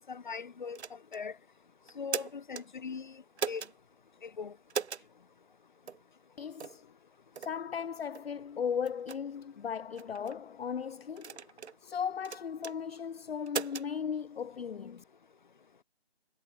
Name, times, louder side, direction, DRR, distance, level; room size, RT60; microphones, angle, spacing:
voice 1, 0.1-1.3 2.0-3.2 3.5-3.6 4.2-4.5, left 5 dB, 45° left, 1.9 m, -40 dB
sound 1, 0.7-1.2 1.9-2.6 3.4-3.7 4.7-5.1 5.9-6.0 6.6-6.8 7.3-7.5 8.1-8.3 8.8-9.2 10.0-10.4 11.2-11.8 12.2-12.7 13.5-13.9, right 6 dB, 90° right, 0.6 m, -38 dB
voice 2, 6.4-6.8 7.4-11.4 11.8-15.0, left 7 dB, 70° left, 0.6 m, -37 dB
sound 2, 6.4-13.5, left 19 dB, 15° left, 4.0 m, -67 dB
figure-of-eight pair, 160°, 32 cm